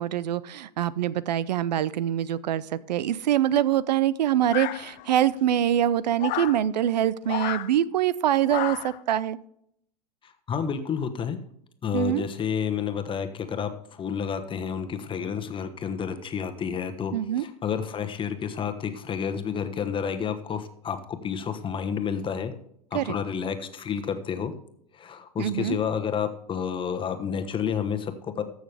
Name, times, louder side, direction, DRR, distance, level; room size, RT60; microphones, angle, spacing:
voice 1, 0.0-9.4 11.9-12.3 17.1-17.5 22.9-23.1 25.4-25.8, right 11 dB, 85° right, 20 dB, 0.5 m, -24 dB
sound 1, 4.5-5.2 6.2-6.6 7.3-7.7 8.5-9.0, left 16 dB, 40° left, 0.5 m, -31 dB
voice 2, 10.2-11.4 11.8-22.5 22.9-24.5 24.9-28.4, left 7 dB, 25° left, 8 dB, 1.1 m, -30 dB
14.0 x 6.4 x 3.4 m, 0.71 s
hypercardioid pair, 105°, 21 cm